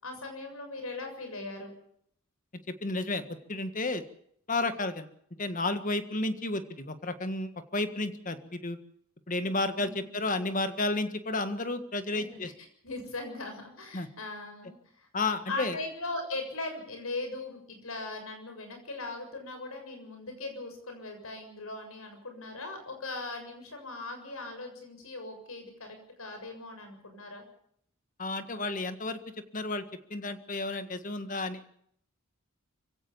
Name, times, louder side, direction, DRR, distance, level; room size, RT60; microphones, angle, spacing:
voice 1, 0.0-1.7 9.8-10.1 12.1-12.4 12.8-15.1 15.5-27.4, left 2 dB, 90° left, 6 dB, 7.0 m, -39 dB
voice 2, 2.8-4.0 4.5-5.1 5.4-8.8 9.3-12.5 13.9-14.1 15.1-15.8 28.2-29.2 29.5-29.8 30.1-31.6, left 2 dB, 40° left, 9 dB, 1.7 m, -32 dB
25.5 x 16.5 x 7.1 m, 0.69 s
head